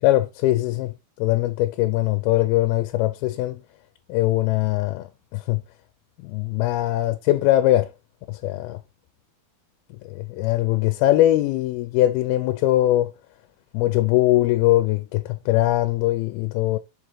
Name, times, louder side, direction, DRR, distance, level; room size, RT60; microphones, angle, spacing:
voice 1, 0.0-0.9 1.2-3.6 4.1-5.0 5.3-5.6 6.2-7.9 8.3-8.8 10.1-13.1 13.7-16.8, left 15 dB, 85° left, 2.5 m, -21 dB
5.5 x 4.9 x 4.6 m
omnidirectional pair, 4.3 m